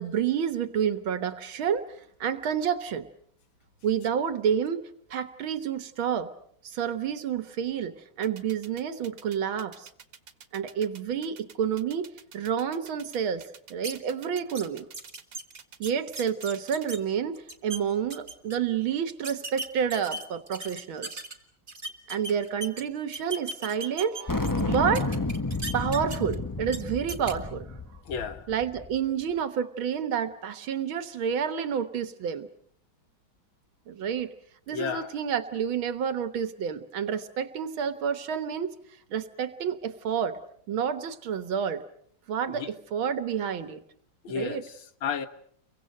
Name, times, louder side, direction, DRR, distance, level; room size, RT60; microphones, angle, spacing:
voice 1, 0.0-1.9 2.2-3.1 3.8-6.3 6.6-9.9 10.5-12.1 12.3-14.9 15.8-21.2 22.1-25.1 25.7-27.8 28.5-32.5 33.9-34.3 34.7-38.7 39.1-40.4 40.7-41.8 42.3-43.8 44.4-44.6, right 8 dB, 85° right, 2.1 m, -29 dB
sound 1, 8.2-16.9, right 7 dB, 65° right, 2.2 m, -49 dB
sound 2, 13.8-13.9 14.4-14.6 14.9-17.0 17.3-17.8 18.1-18.6 19.2-21.3 21.7-22.8 23.1-24.6 24.9-26.3 26.7-26.8 27.1-27.3, right 2 dB, 25° right, 2.3 m, -37 dB
sound 3, 24.3-29.0, left 3 dB, 30° left, 0.3 m, -31 dB
voice 2, 28.1-28.5 34.7-35.1 42.5-42.7 44.2-45.3, left 6 dB, 80° left, 2.1 m, -33 dB
30.0 x 24.0 x 6.5 m
omnidirectional pair, 2.2 m